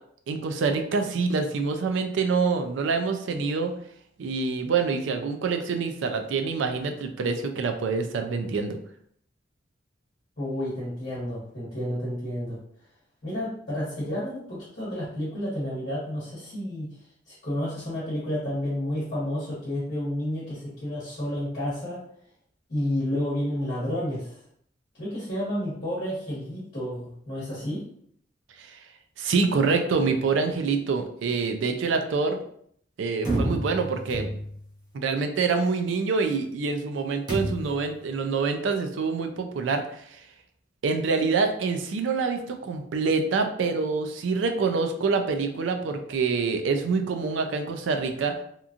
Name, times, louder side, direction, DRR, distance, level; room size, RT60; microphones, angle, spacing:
voice 1, 0.3-3.7 4.2-8.8 28.6-28.8 29.2-32.4 33.0-34.3 34.9-40.2 40.8-48.3, right 4 dB, 75° right, 6 dB, 0.4 m, -26 dB
voice 2, 10.4-12.6 13.2-16.9 17.3-22.0 22.7-24.4 25.0-27.8, left 1 dB, 50° left, -9 dB, 1.1 m, -30 dB
sound 1, 33.3-34.7 37.3-37.9, right 1 dB, 25° right, 0.7 m, -29 dB
2.9 x 2.4 x 2.4 m, 0.66 s
head